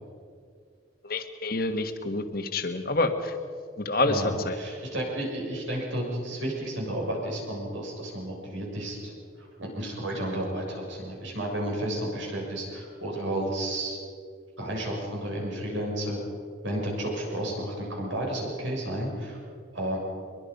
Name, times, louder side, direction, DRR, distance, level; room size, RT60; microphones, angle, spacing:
voice 1, 1.0-3.4 3.8-4.6, left 2 dB, 50° left, 7 dB, 1.6 m, -28 dB
voice 2, 4.1-14.0 14.6-16.2 16.6-19.4 19.7-20.0, right 1 dB, 75° right, -1 dB, 6.8 m, -32 dB
23.0 x 22.5 x 5.5 m, 2.2 s
head